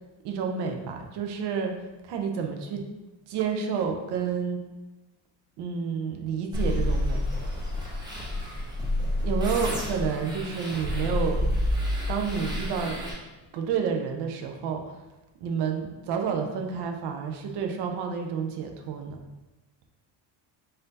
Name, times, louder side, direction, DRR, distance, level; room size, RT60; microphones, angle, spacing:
voice 1, 0.2-1.8 2.0-2.9 3.3-4.6 5.6-7.2 9.2-11.5 12.1-13.0 13.5-14.9 15.4-19.2, right 6 dB, 55° right, 3 dB, 0.6 m, -30 dB
sound 1, 6.5-13.1, left 1 dB, 10° right, 0.4 m, -29 dB
4.1 x 2.6 x 3.9 m, 1.1 s
cardioid pair, 175°, 48 cm